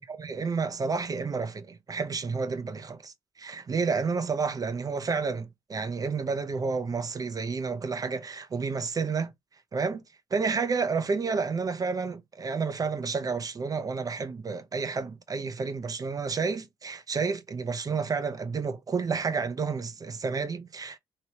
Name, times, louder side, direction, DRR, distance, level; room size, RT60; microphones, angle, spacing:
voice 1, 0.0-3.1 3.4-9.3 9.7-10.0 10.3-21.0, right 4 dB, 35° right, 0.6 m, -30 dB
3.0 x 2.9 x 2.8 m
supercardioid pair, 55°, 10 cm